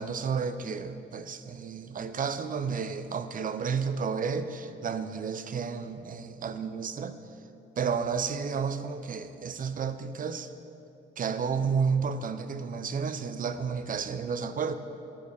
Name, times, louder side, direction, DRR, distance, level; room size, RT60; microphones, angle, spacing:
voice 1, 0.0-7.2 7.8-10.5 11.2-14.7, right 6 dB, 45° right, 10 dB, 0.6 m, -31 dB
12.0 x 5.1 x 6.6 m, 2.8 s
cardioid pair, 90°, 20 cm